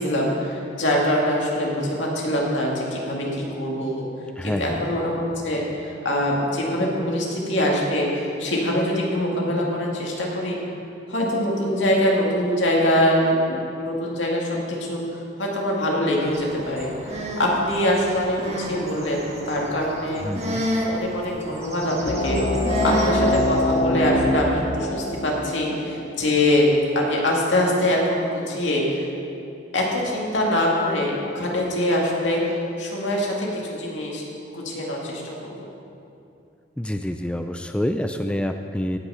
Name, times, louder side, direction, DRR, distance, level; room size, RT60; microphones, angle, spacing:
voice 1, 0.0-4.0 4.4-10.6 11.1-13.3 13.8-20.6 20.9-22.4 22.8-26.7 26.9-29.1 29.7-34.2 34.5-35.7, left 1 dB, 80° left, -2 dB, 2.2 m, -24 dB
voice 2, 4.4-4.8 20.2-20.7 36.8-39.0, left 1 dB, 5° left, 6 dB, 0.3 m, -27 dB
sound 1, 16.2-23.8, right 1 dB, 35° right, 1.5 m, -31 dB
sound 2, 22.0-27.1, left 1 dB, 45° left, 1.0 m, -24 dB
16.5 x 5.9 x 5.7 m, 2.7 s
head